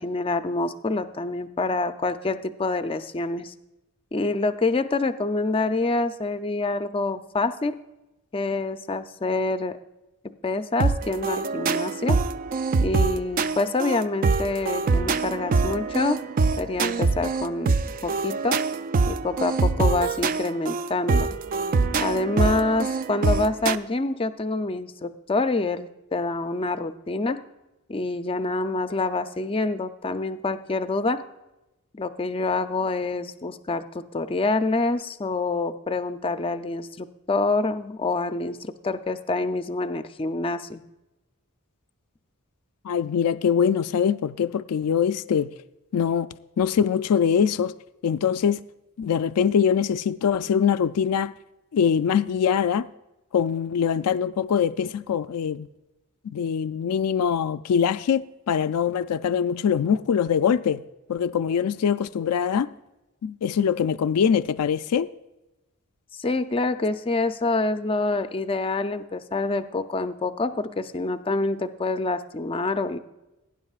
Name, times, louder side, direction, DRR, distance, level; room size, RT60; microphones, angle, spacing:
voice 1, 0.0-3.5 4.1-7.8 8.3-9.8 10.2-12.2 12.8-16.2 16.6-18.6 19.1-21.3 22.0-27.4 27.9-31.2 31.9-40.8 66.1-73.0, left 3 dB, 25° left, 0.5 m, -26 dB
sound 1, 10.8-23.7, right 4 dB, 40° right, 0.3 m, -24 dB
voice 2, 42.8-45.5 45.9-46.3 46.6-47.7 48.0-48.6 49.0-51.3 51.7-52.9 53.3-55.7 56.2-60.8 61.1-62.7 63.2-65.1, left 7 dB, 85° left, 0.4 m, -23 dB
17.5 x 10.0 x 2.4 m
head